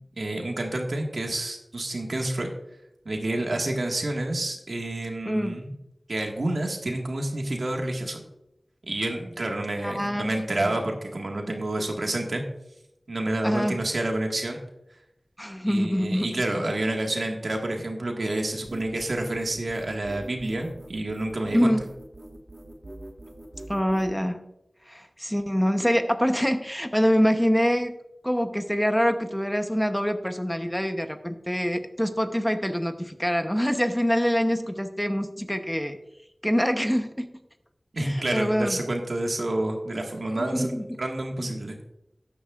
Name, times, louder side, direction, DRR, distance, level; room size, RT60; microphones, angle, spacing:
voice 1, 0.1-2.5 3.0-5.8 6.1-8.2 8.9-12.4 13.1-14.6 15.6-21.7 37.9-40.7 41.0-41.8, right 1 dB, 80° right, 2 dB, 1.7 m, -29 dB
voice 2, 5.3-5.6 9.8-10.3 10.6-10.7 13.4-13.8 15.4-16.4 21.5-21.8 23.7-24.4 24.9-27.9 28.2-36.0 36.4-37.3 38.0-38.8 40.4-40.9, equal, 5° left, 7 dB, 0.9 m, -25 dB
sound 1, 18.6-24.1, right 1 dB, 45° right, 1.5 m, -43 dB
13.0 x 9.9 x 2.4 m, 0.85 s
wide cardioid pair, 60°, 0 cm